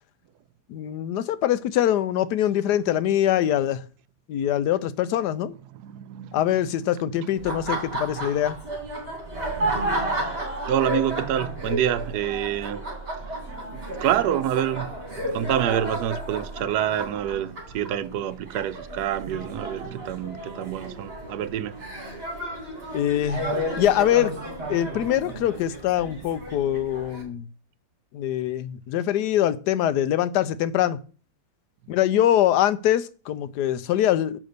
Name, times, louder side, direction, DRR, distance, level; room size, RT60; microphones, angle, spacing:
voice 1, 0.7-3.8 4.3-5.5 6.3-8.6 22.9-23.4 23.8-24.3 24.7-27.5 28.1-31.0 31.9-34.4, left 11 dB, 80° left, 1.2 m, -23 dB
voice 2, 5.7-8.5 10.7-12.8 14.0-21.8, right 10 dB, 75° right, 1.1 m, -28 dB
Laughter, 7.4-27.2, right 1 dB, 35° right, 2.6 m, -32 dB
6.1 x 5.3 x 6.7 m
omnidirectional pair, 1.8 m